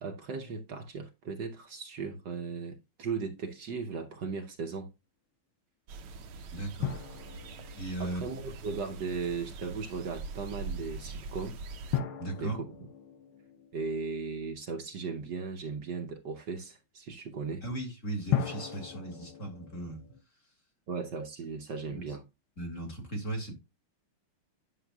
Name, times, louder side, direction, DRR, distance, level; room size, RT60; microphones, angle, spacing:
voice 1, 0.0-4.9 8.0-11.6 12.4-12.6 13.7-17.6 20.9-22.2, right 5 dB, 60° right, 1.5 m, -37 dB
sound 1, 5.9-12.0, right 3 dB, 75° right, 1.7 m, -43 dB
voice 2, 6.5-7.0 7.7-8.2 12.2-12.6 17.6-20.0 21.9-22.0 22.6-23.5, right 1 dB, 35° left, 2.6 m, -37 dB
sound 2, 6.8-9.1 11.9-14.9 18.3-20.2, left 9 dB, 75° left, 1.7 m, -37 dB
10.0 x 6.9 x 2.3 m
omnidirectional pair, 2.4 m